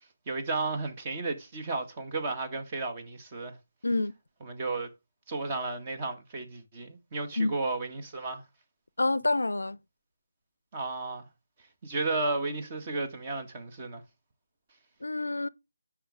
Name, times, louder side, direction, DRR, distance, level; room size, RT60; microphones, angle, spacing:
voice 1, 0.3-3.6 4.4-4.9 5.3-8.4 10.7-11.3 11.8-14.0, right 3 dB, 25° right, 1.7 m, -33 dB
voice 2, 3.8-4.1 7.4-7.6 9.0-9.8 15.0-15.5, left 2 dB, 70° left, 0.6 m, -27 dB
9.9 x 6.4 x 3.5 m
figure-of-eight pair, 155°, 0 cm